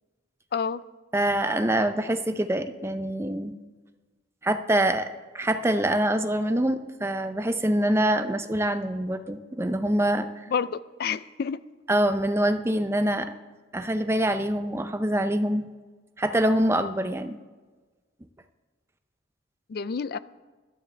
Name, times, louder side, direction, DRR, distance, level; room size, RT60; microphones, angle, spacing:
voice 1, 0.5-0.8 10.5-11.6 19.7-20.2, left 6 dB, 55° left, 17 dB, 0.4 m, -29 dB
voice 2, 1.1-3.5 4.4-5.1 5.3-10.5 11.9-13.3 13.7-15.7 16.2-17.4, right 1 dB, 15° right, 9 dB, 0.5 m, -25 dB
17.0 x 11.5 x 3.3 m, 1.3 s
head